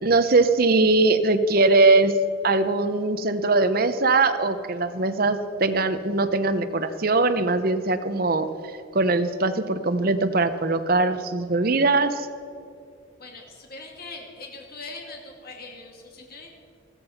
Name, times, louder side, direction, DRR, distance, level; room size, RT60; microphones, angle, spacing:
voice 1, 0.0-2.1 2.4-8.5 8.9-12.3, right 3 dB, 45° right, 10 dB, 0.8 m, -21 dB
voice 2, 13.2-16.5, left 3 dB, 50° left, 1 dB, 2.2 m, -41 dB
14.0 x 13.5 x 5.7 m, 2.5 s
head